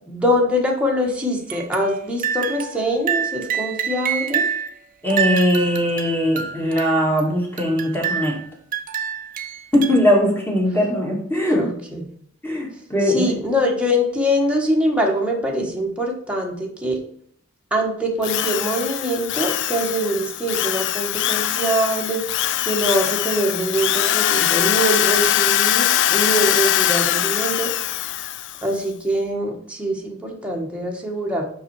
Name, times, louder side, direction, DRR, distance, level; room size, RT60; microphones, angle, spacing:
voice 1, 0.1-4.5 11.6-12.0 13.1-17.0 17.7-22.4 22.6-27.7 28.6-31.5, equal, 5° right, -1 dB, 1.4 m, -23 dB
sound 1, 1.5-1.9 2.2-4.7 5.1-7.2 7.6-8.5 8.7-10.2, right 7 dB, 40° right, 0.7 m, -27 dB
voice 2, 5.0-8.4 9.7-11.7 12.4-13.3, equal, 10° left, -2 dB, 2.3 m, -20 dB
Drill, 18.2-28.6, left 12 dB, 60° left, 0.4 m, -22 dB
5.8 x 5.7 x 4.7 m, 0.65 s
head